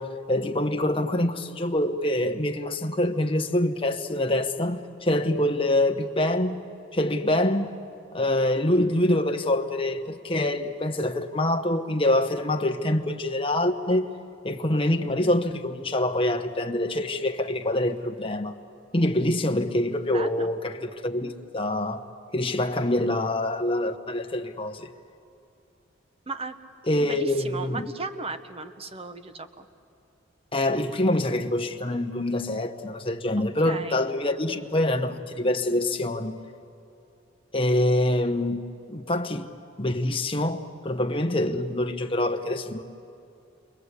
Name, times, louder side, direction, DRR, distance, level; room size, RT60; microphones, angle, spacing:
voice 1, 0.0-6.6 6.9-7.7 8.1-14.1 14.4-18.6 18.9-22.0 22.3-24.9 26.9-27.9 30.5-36.4 37.5-38.6 38.9-39.5 39.8-42.8, left 1 dB, 25° left, 1.1 m, -25 dB
voice 2, 20.1-20.5 26.3-26.6 27.0-29.7 33.6-34.0, right 3 dB, 30° right, 1.1 m, -36 dB
29.5 x 24.0 x 8.4 m
head